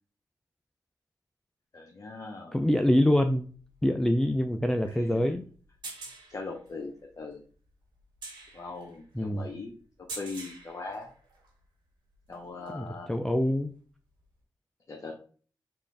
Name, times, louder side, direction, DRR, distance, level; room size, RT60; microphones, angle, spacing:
voice 1, 1.7-2.6 4.9-5.3 6.3-7.4 8.5-9.8 10.2-11.1 12.3-13.1 14.9-15.1, left 3 dB, 45° left, 1 dB, 0.8 m, -40 dB
voice 2, 2.5-3.5 3.8-5.4 9.1-9.5 12.7-13.7, left 1 dB, 5° left, 6 dB, 0.4 m, -25 dB
sound 1, 3.3-11.6 12.1-12.9 14.2-14.3, right 3 dB, 85° right, 1.5 m, -47 dB
3.7 x 2.5 x 3.3 m, 0.42 s
cardioid pair, 50°, 8 cm